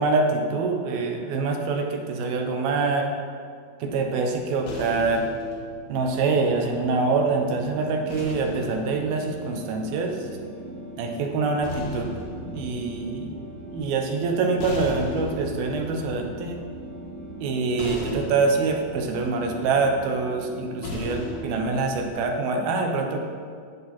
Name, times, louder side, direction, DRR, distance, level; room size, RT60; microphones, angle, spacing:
voice 1, 0.0-3.1 3.8-5.2 5.9-10.3 11.0-12.1 12.5-13.3 13.7-16.6 17.4-23.2, right 4 dB, 80° right, 3 dB, 2.9 m, -25 dB
sound 1, 4.7-7.2 8.1-10.4 11.3-22.4, left 1 dB, 80° left, 3.2 m, -39 dB
sound 2, 6.3-22.1, right 1 dB, 60° right, 1.2 m, -40 dB
13.5 x 8.4 x 4.3 m, 2.1 s
omnidirectional pair, 4.2 m